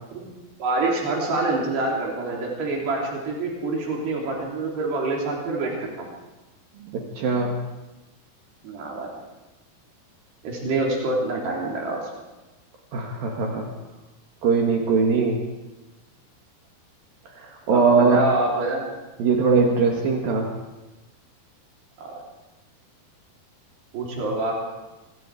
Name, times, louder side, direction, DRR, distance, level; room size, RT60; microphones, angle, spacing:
voice 1, 0.6-6.1 8.6-9.1 10.4-12.0 17.7-18.9 22.0-22.1 23.9-24.5, right 2 dB, 85° right, -2 dB, 5.6 m, -26 dB
voice 2, 6.8-7.6 12.9-13.7 14.4-15.4 17.3-18.2 19.2-20.5, right 4 dB, 65° right, 0 dB, 3.7 m, -21 dB
25.5 x 23.0 x 4.9 m, 1.1 s
omnidirectional pair, 4.6 m